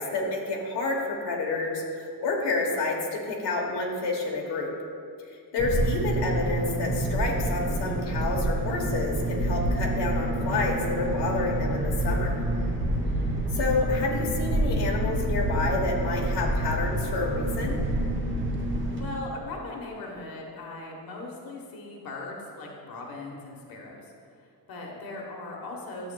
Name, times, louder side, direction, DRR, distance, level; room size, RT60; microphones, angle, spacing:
voice 1, 0.0-4.7 5.3-12.4 13.5-17.8, left 3 dB, 80° left, -1 dB, 1.3 m, -29 dB
voice 2, 5.5-5.8 18.9-24.1 24.4-26.1, left 2 dB, 60° left, -1 dB, 1.2 m, -39 dB
sound 1, 5.6-19.0, right 1 dB, 30° right, 1.0 m, -28 dB
13.0 x 7.6 x 2.3 m, 2.3 s
wide cardioid pair, 180°, 41 cm